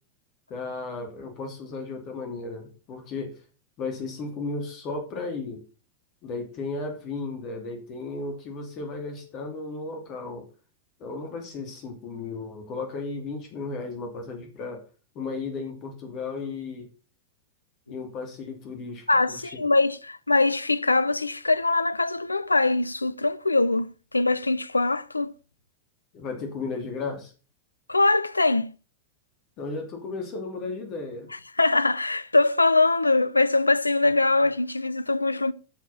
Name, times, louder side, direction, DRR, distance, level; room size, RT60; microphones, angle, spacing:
voice 1, 0.5-3.3 3.8-5.6 6.2-10.5 11.0-14.8 15.1-16.9 17.9-19.6 26.1-27.3 29.6-31.3, left 3 dB, 35° left, 2.8 m, -34 dB
voice 2, 19.1-23.9 24.1-25.3 27.9-28.7 31.6-35.5, left 2 dB, 80° left, 0.6 m, -22 dB
10.5 x 6.5 x 5.6 m
figure-of-eight pair, 90°, 0 cm